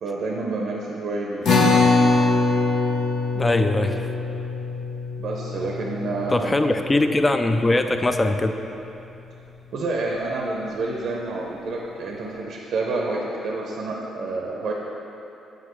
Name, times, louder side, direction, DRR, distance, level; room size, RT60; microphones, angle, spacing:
voice 1, 0.0-1.5 5.2-6.5 9.7-14.7, right 2 dB, 70° right, -1 dB, 0.6 m, -28 dB
sound 1, 1.4-8.1, left 3 dB, 80° left, 0.8 m, -23 dB
voice 2, 3.3-4.1 6.3-8.5, left 2 dB, 20° left, 7 dB, 0.4 m, -21 dB
8.2 x 4.7 x 3.1 m, 2.9 s
cardioid pair, 90°, 0 cm